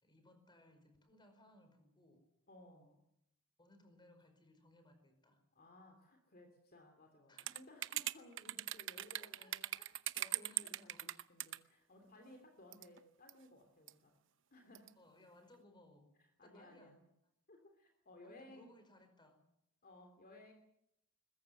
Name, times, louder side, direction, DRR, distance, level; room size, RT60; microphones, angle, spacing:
voice 1, 0.0-2.2 3.6-5.4 7.3-7.6 9.2-11.2 15.0-16.1 16.4-17.0 18.2-19.4, left 1 dB, 20° left, 7 dB, 5.1 m, -65 dB
voice 2, 2.5-3.0 5.5-9.8 10.1-14.2 14.5-15.0 16.4-17.0 17.5-18.7 19.8-20.5, left 1 dB, 45° left, 3 dB, 2.9 m, -60 dB
sound 1, 7.4-11.6 12.7-13.0 13.3-13.4 13.9-14.0 14.7-14.9, right 13 dB, 60° right, 0.8 m, -40 dB
22.0 x 21.0 x 7.9 m, 0.79 s
head